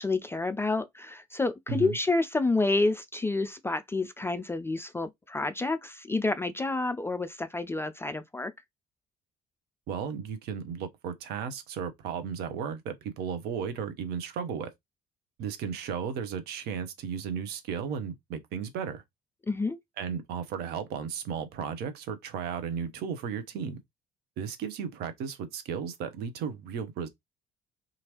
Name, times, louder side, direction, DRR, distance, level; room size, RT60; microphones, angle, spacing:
voice 1, 0.0-8.5 19.5-19.8, left 3 dB, 10° left, 0.3 m, -29 dB
voice 2, 9.9-14.7 15.4-19.0 20.0-23.8 24.4-27.1, right 7 dB, 55° right, 0.7 m, -34 dB
2.9 x 2.5 x 2.9 m
figure-of-eight pair, 50°, 20 cm